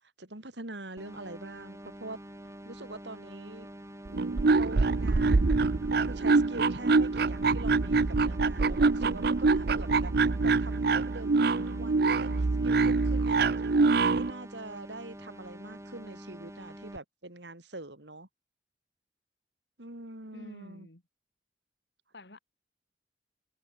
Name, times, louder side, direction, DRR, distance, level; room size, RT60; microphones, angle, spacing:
voice 1, 0.0-2.2 2.6-3.7 4.5-5.6 5.9-13.4 14.0-18.3 19.8-20.9, right 2 dB, 80° right, 5.1 m, -44 dB
sound 1, 1.0-17.0, equal, 15° right, 5.3 m, -46 dB
sound 2, 4.1-14.3, right 3 dB, 60° right, 0.6 m, -25 dB
voice 2, 20.3-21.0 22.1-22.4, left 1 dB, 70° left, 2.9 m, -48 dB
head